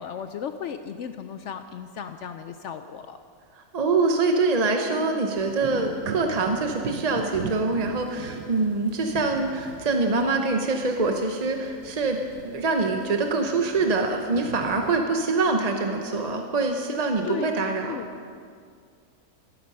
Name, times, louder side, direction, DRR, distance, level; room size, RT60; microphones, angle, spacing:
voice 1, 0.0-3.2 17.2-17.5 17.9-18.1, left 8 dB, 70° left, 9 dB, 0.7 m, -35 dB
voice 2, 3.7-18.0, right 3 dB, 35° right, 4 dB, 0.6 m, -24 dB
sound 1, 5.3-15.0, right 7 dB, 80° right, 1.2 m, -40 dB
13.5 x 12.0 x 5.4 m, 2.2 s
omnidirectional pair, 1.6 m